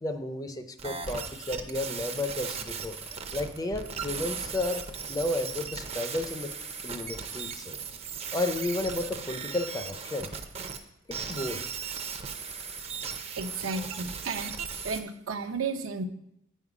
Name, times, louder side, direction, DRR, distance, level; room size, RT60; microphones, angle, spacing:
voice 1, 0.0-3.0 3.3-4.8 5.1-6.5 6.8-7.8 8.3-10.3 11.1-11.6 13.7-14.0, left 2 dB, 20° left, 8 dB, 0.5 m, -32 dB
sound 1, 0.8-10.8 11.1-15.0, right 6 dB, 30° right, 0.6 m, -37 dB
voice 2, 13.3-14.5 14.8-16.0, right 4 dB, 80° right, 7 dB, 0.7 m, -33 dB
8.8 x 5.4 x 4.9 m, 0.78 s
head